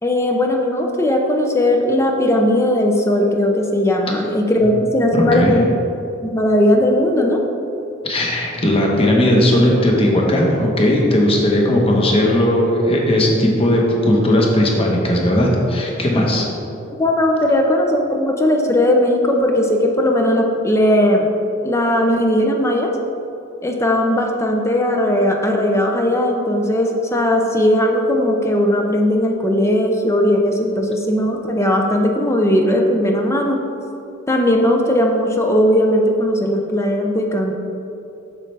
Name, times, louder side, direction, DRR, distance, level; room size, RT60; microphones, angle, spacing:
voice 1, 0.0-5.6 6.2-7.4 17.0-21.3 21.6-22.9 23.6-33.6 34.3-37.6, left 1 dB, 15° left, 2 dB, 0.5 m, -17 dB
voice 2, 5.1-5.5 8.0-16.5, left 1 dB, 30° left, -1 dB, 1.0 m, -16 dB
7.4 x 6.5 x 3.3 m, 2.8 s
head